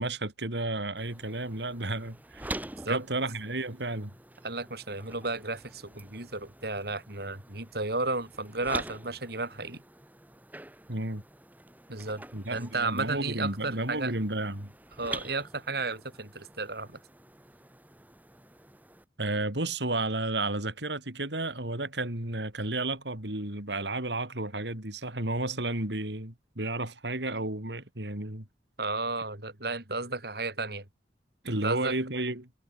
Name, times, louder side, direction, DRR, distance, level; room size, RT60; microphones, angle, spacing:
voice 1, 0.0-2.6 2.9-4.1 10.9-11.2 12.3-14.7 19.2-28.5 31.4-32.5, right 2 dB, 80° right, 4.6 m, -32 dB
sound 1, 1.0-19.1, right 1 dB, 10° right, 2.8 m, -46 dB
voice 2, 4.4-9.8 11.9-12.2 12.5-14.2 15.0-17.0 28.8-30.8 31.6-31.9, right 3 dB, 60° right, 4.9 m, -33 dB
head